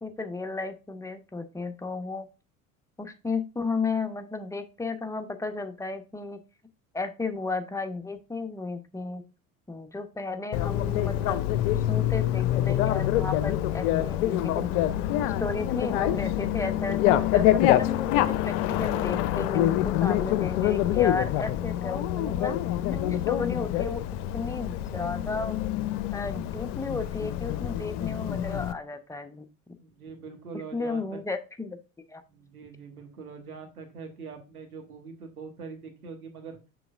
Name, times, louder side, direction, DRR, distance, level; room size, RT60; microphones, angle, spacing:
voice 1, 0.0-2.2 3.0-6.4 6.9-9.2 9.7-11.5 11.9-14.8 15.2-22.6 23.1-24.0 24.3-25.6 26.1-29.5 30.7-31.8 32.1-32.2, left 3 dB, 5° left, 7 dB, 0.8 m, -34 dB
Bicycle, 10.5-28.7, left 12 dB, 55° left, 0.6 m, -26 dB
voice 2, 29.8-31.2 32.2-36.6, right 5 dB, 85° right, 4 dB, 1.4 m, -43 dB
6.9 x 5.7 x 2.4 m, 0.30 s
figure-of-eight pair, 65°, 43 cm